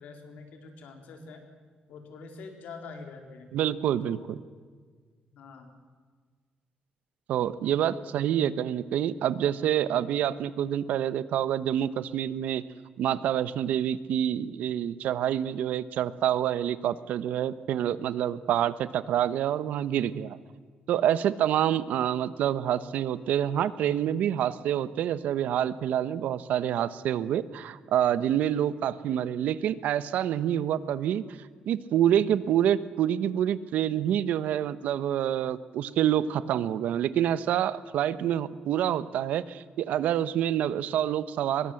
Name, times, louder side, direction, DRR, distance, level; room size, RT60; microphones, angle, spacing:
voice 1, 0.0-1.4 1.9-3.5 4.0-4.3 5.3-5.7 7.8-8.0, left 4 dB, 80° left, 4 dB, 4.1 m, -45 dB
voice 2, 3.5-4.4 7.3-12.6 13.0-20.4 20.9-31.2 31.7-41.7, right 10 dB, 90° right, 15 dB, 1.1 m, -27 dB
25.0 x 22.5 x 7.9 m, 1.6 s
cardioid pair, 135°, 3 cm